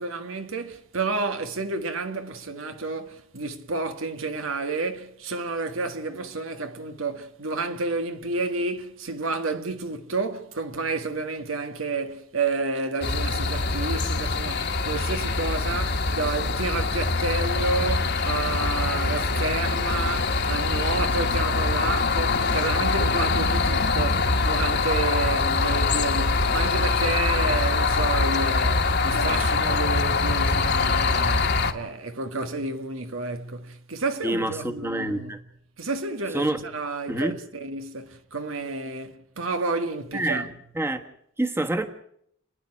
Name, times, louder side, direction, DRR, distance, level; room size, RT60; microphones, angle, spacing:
voice 1, 0.0-35.3 35.8-40.5, right 3 dB, 85° right, 1.7 m, -30 dB
sound 1, 13.0-31.7, left 3 dB, 55° left, 1.6 m, -24 dB
voice 2, 34.2-35.4 36.3-36.6 37.1-37.4 40.1-41.0 41.4-41.9, right 1 dB, 10° right, 1.4 m, -27 dB
29.5 x 10.0 x 9.8 m
head